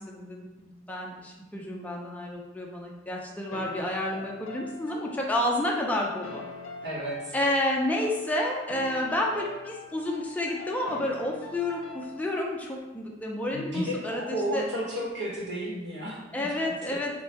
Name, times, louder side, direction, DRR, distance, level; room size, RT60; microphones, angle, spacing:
voice 1, 0.0-6.4 7.3-14.6 16.3-17.1, left 1 dB, 10° left, -1 dB, 0.3 m, -30 dB
sound 1, 3.5-12.4, left 3 dB, 80° left, 0.5 m, -43 dB
voice 2, 6.8-7.3 13.5-16.2 16.6-17.0, equal, 65° right, -7 dB, 1.0 m, -33 dB
2.8 x 2.2 x 3.2 m, 1.2 s
head